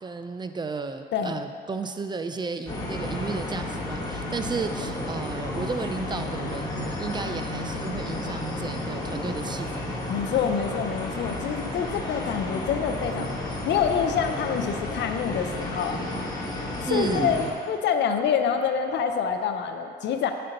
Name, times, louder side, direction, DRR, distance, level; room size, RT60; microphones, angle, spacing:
voice 1, 0.0-10.0 12.6-12.7 16.9-17.4, right 4 dB, 25° right, 8 dB, 0.5 m, -33 dB
voice 2, 1.1-1.4 10.1-16.0 16.8-20.3, left 7 dB, 70° left, 6 dB, 0.6 m, -26 dB
sound 1, 2.7-17.5, left 2 dB, 20° left, 1.4 m, -32 dB
8.7 x 4.3 x 5.2 m, 2.4 s
cardioid pair, 85°, 19 cm